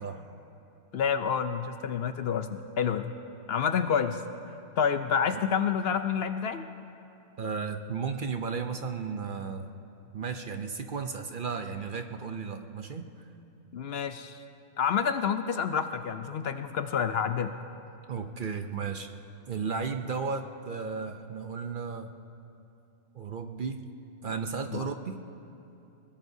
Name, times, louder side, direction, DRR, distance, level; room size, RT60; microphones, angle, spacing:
voice 1, 0.9-3.1 3.5-4.2 4.8-6.6 13.7-14.4 14.8-17.5 24.7-24.9, left 7 dB, 65° left, 9 dB, 0.7 m, -28 dB
voice 2, 7.4-9.7 10.1-13.3 18.1-19.1 19.5-22.1 23.1-23.8 24.2-25.2, right 5 dB, 50° right, 6 dB, 0.7 m, -34 dB
21.5 x 21.5 x 2.7 m, 2.9 s
omnidirectional pair, 1.2 m